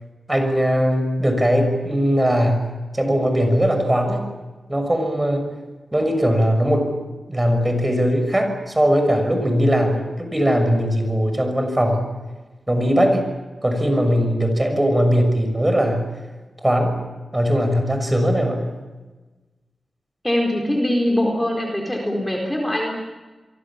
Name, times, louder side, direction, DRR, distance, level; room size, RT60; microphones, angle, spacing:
voice 1, 0.3-2.6 2.9-4.2 4.7-5.5 5.9-6.9 7.3-12.0 12.7-13.2 13.6-16.1 16.6-17.0 17.3-18.7, equal, 15° right, 5 dB, 6.1 m, -19 dB
voice 2, 20.2-22.9, left 1 dB, 10° left, 0 dB, 4.2 m, -22 dB
27.5 x 23.5 x 7.4 m, 1.2 s
wide cardioid pair, 95°, 0 cm